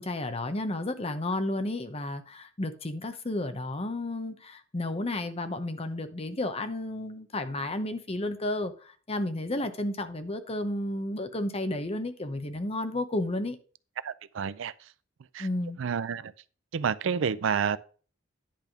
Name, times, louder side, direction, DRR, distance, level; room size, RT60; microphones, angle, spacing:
voice 1, 0.0-13.6 15.4-15.8, left 1 dB, 30° left, 0.8 m, -32 dB
voice 2, 14.0-14.7 15.3-15.5 15.8-16.3 16.7-17.8, right 6 dB, 65° right, 0.4 m, -29 dB
10.5 x 3.5 x 5.9 m
head